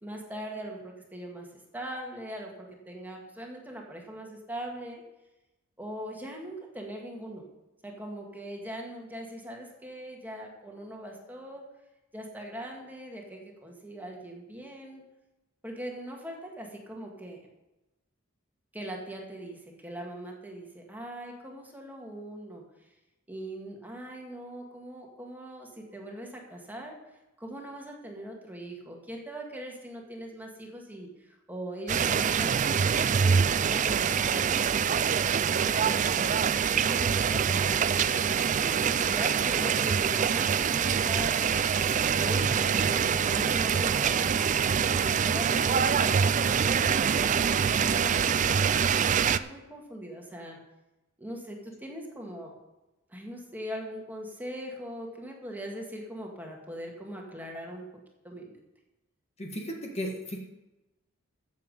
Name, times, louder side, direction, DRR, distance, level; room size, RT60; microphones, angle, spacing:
voice 1, 0.0-1.5 1.7-5.0 5.8-7.4 7.8-11.7 12.1-15.0 15.6-17.4 18.7-22.6 23.3-27.0 27.4-36.3 36.9-41.7 42.2-50.6 51.2-52.6 53.1-57.9 58.2-58.6, right 1 dB, 10° right, 0 dB, 2.0 m, -41 dB
sound 1, 31.9-49.4, right 7 dB, 35° right, 0.4 m, -25 dB
voice 2, 59.4-60.4, equal, 30° left, 1 dB, 1.6 m, -35 dB
14.5 x 7.4 x 5.4 m, 1.0 s
head